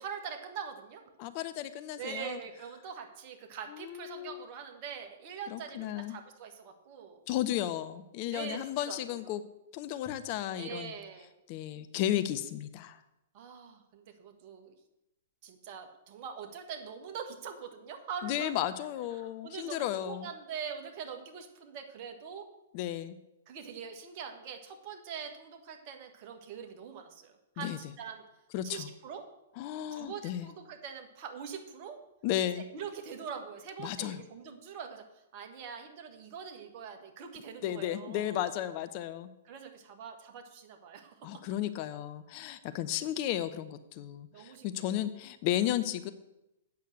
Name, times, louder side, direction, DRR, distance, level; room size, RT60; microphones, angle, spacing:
voice 1, 0.0-1.0 2.0-7.2 8.3-8.6 8.9-9.3 10.6-11.3 13.3-14.7 15.4-18.5 19.2-22.4 23.5-28.2 28.6-29.2 29.9-32.0 32.5-35.0 35.3-38.4 39.5-41.1 42.9-43.0 44.3-45.0 45.6-45.7, right 7 dB, 40° right, 4 dB, 1.6 m, -43 dB
voice 2, 1.2-2.4 3.7-4.4 5.5-6.2 7.3-9.4 9.7-11.0 11.5-13.0 18.2-20.3 22.7-23.2 27.6-27.8 28.5-28.9 29.6-30.5 32.2-32.6 33.8-34.2 37.6-39.3 41.2-46.1, left 12 dB, 40° left, 11 dB, 0.6 m, -34 dB
8.3 x 6.6 x 7.8 m, 0.91 s
figure-of-eight pair, 110°, 0 cm